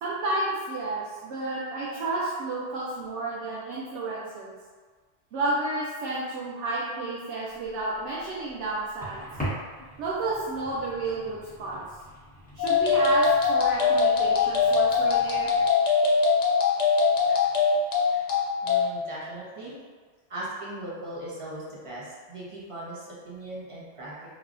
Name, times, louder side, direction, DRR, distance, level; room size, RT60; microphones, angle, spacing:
voice 1, 0.0-4.5 5.3-9.2 10.0-11.8 12.5-15.5, right 2 dB, 90° right, -6 dB, 0.9 m, -31 dB
sound 1, 7.5-15.7, equal, 10° left, 0.9 m, -42 dB
sound 2, 12.6-18.9, left 5 dB, 85° left, 0.9 m, -22 dB
voice 2, 18.6-19.8 20.3-24.4, right 1 dB, 35° right, -7 dB, 0.7 m, -39 dB
3.3 x 2.2 x 2.4 m, 1.4 s
omnidirectional pair, 1.2 m